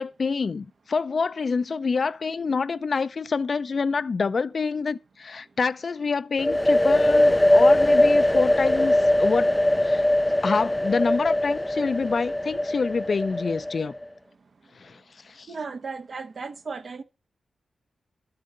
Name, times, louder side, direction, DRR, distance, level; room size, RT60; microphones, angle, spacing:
voice 1, 0.0-9.5 9.8-10.1 10.4-13.9 14.7-15.5, left 4 dB, 60° left, 0.6 m, -27 dB
sound 1, 6.4-14.0, left 1 dB, 10° left, 0.5 m, -21 dB
voice 2, 15.5-17.0, right 4 dB, 60° right, 1.2 m, -35 dB
12.5 x 6.7 x 5.3 m
cardioid pair, 55°, 0 cm